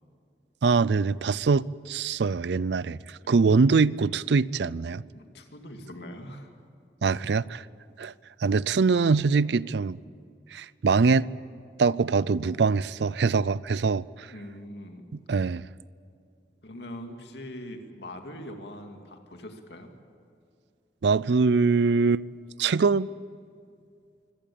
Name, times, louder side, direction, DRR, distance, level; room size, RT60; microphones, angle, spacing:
voice 1, 0.6-5.0 7.0-7.6 8.0-8.1 8.4-10.0 10.5-11.3 11.8-14.3 15.1-15.6 21.0-22.2 22.6-23.1, right 4 dB, 80° right, 0.4 m, -23 dB
voice 2, 5.1-6.5 14.3-15.1 16.6-19.9, left 1 dB, 75° left, 2.4 m, -42 dB
24.5 x 17.5 x 8.6 m
head